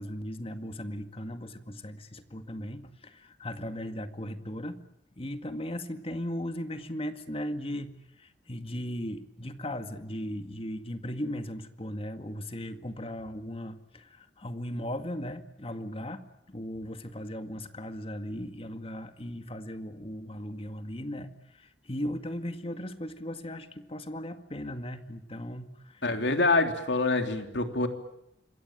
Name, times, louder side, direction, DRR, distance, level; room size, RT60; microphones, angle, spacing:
voice 1, 0.0-4.8 5.2-26.0, equal, 35° left, 8 dB, 2.0 m, -37 dB
voice 2, 26.0-27.9, left 3 dB, 80° left, 6 dB, 3.3 m, -26 dB
27.0 x 22.5 x 8.9 m, 0.83 s
head